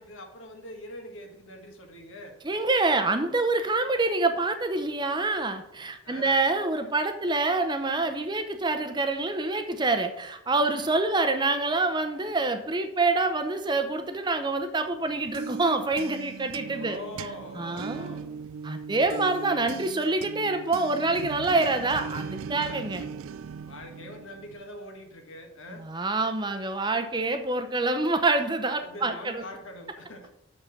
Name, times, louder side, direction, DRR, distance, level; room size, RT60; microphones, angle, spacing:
voice 1, 0.0-2.4 6.0-6.4 10.6-10.9 16.6-18.3 19.0-19.3 21.4-21.5 22.6-22.9 23.6-25.9 27.1-27.2 28.8-30.3, left 1 dB, 70° left, 3 dB, 1.5 m, -43 dB
voice 2, 2.4-17.0 17.6-18.2 18.6-23.0 25.7-29.4, right 3 dB, 20° right, 7 dB, 0.6 m, -26 dB
sound 1, 15.0-24.7, right 6 dB, 75° right, 0.4 m, -39 dB
6.6 x 5.7 x 5.8 m, 0.84 s
head